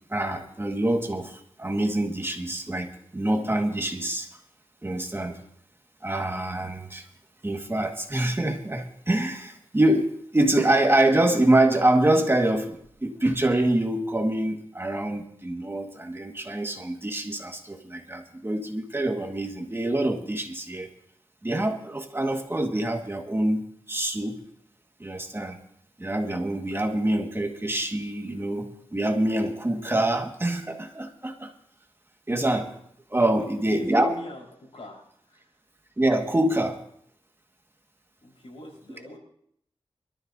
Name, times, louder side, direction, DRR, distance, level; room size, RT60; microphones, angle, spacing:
voice 1, 0.1-4.3 4.8-5.4 6.0-7.0 7.4-20.9 21.4-24.4 25.0-25.6 26.0-31.5 32.3-32.7 33.1-34.1 36.0-36.8, right 1 dB, 25° right, 3 dB, 1.7 m, -25 dB
voice 2, 33.3-35.4 38.2-39.2, left 2 dB, 85° left, -2 dB, 4.6 m, -44 dB
24.5 x 13.0 x 2.7 m, 0.69 s
wide cardioid pair, 75°, 10 cm